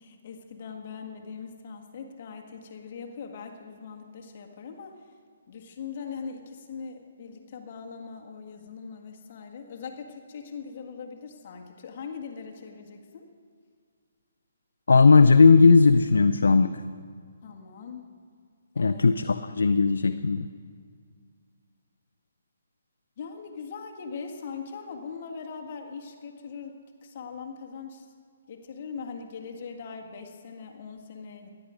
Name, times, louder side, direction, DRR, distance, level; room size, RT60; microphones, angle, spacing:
voice 1, 0.0-5.1 5.5-13.3 17.4-18.1 18.7-19.1 23.2-28.1 28.5-31.5, left 5 dB, 45° left, 3 dB, 1.7 m, -41 dB
voice 2, 14.9-16.7 18.8-20.4, left 4 dB, 80° left, 10 dB, 0.6 m, -17 dB
16.0 x 11.0 x 5.1 m, 2.1 s
hypercardioid pair, 150°, 0 cm